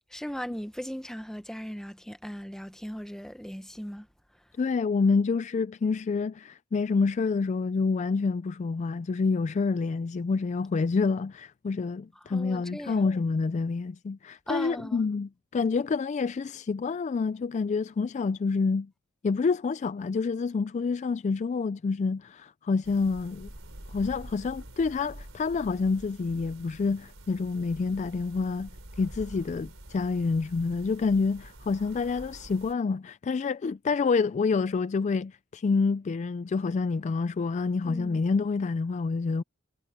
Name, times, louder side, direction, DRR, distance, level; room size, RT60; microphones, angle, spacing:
voice 1, 0.1-4.1 12.3-13.0 14.5-15.0 37.8-38.2, equal, 5° left, 1.0 m, -38 dB
voice 2, 4.6-18.9 19.2-23.5 23.9-28.7 29.0-39.4, left 4 dB, 35° left, 0.3 m, -28 dB
sound 1, 22.8-32.7, right 1 dB, 80° right, 4.4 m, -47 dB
head